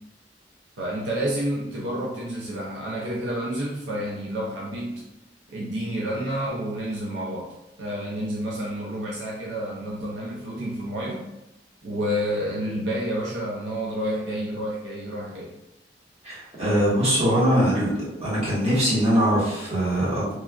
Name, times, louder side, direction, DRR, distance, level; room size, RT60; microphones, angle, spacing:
voice 1, 0.8-5.0 5.5-7.5 7.8-11.3 11.8-15.5, equal, 75° right, -4 dB, 0.5 m, -29 dB
voice 2, 16.2-17.9 18.2-20.3, equal, 35° right, -9 dB, 1.3 m, -22 dB
3.1 x 2.4 x 2.3 m, 0.91 s
head